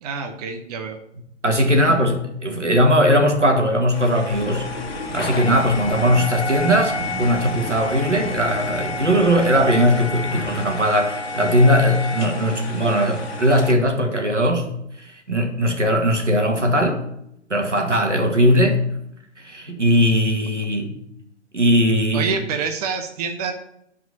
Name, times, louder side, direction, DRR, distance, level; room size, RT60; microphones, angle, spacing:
voice 1, 0.0-1.0 1.6-1.9 22.1-23.5, right 5 dB, 35° right, 5 dB, 0.9 m, -27 dB
voice 2, 1.4-4.7 5.1-14.7 15.0-17.0 17.5-18.8 19.4-21.0 21.5-22.3, equal, 85° right, 3 dB, 2.1 m, -19 dB
sound 1, 3.9-13.7, left 2 dB, 55° left, 1.5 m, -30 dB
sound 2, 4.3-10.8, equal, 10° right, 2.5 m, -36 dB
9.3 x 5.0 x 7.2 m, 0.77 s
figure-of-eight pair, 120°, 35 cm